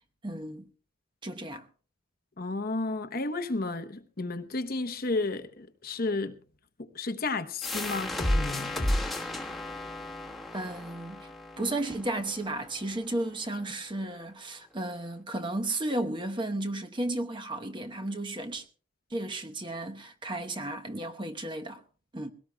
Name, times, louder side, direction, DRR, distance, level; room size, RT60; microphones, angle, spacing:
voice 1, 0.2-0.7 1.2-1.7 10.5-11.3 11.6-18.7 19.1-21.8 22.1-22.3, right 1 dB, 25° right, 0.9 m, -34 dB
voice 2, 2.4-6.4 6.8-8.9, left 3 dB, 45° left, 0.9 m, -32 dB
sound 1, 7.6-13.0, left 1 dB, ahead, 1.3 m, -33 dB
22.0 x 17.5 x 2.2 m
head